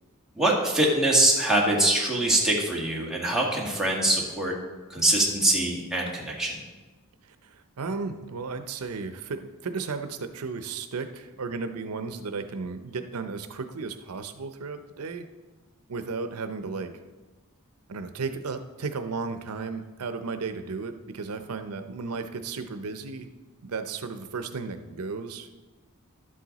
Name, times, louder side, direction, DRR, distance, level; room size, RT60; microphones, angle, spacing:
voice 1, 0.3-4.5 4.9-6.6, right 1 dB, ahead, -3 dB, 1.6 m, -23 dB
voice 2, 7.2-15.3 15.9-16.9 17.9-23.3 23.6-25.7, right 4 dB, 85° right, 8 dB, 0.6 m, -34 dB
11.5 x 7.6 x 4.0 m, 1.2 s
head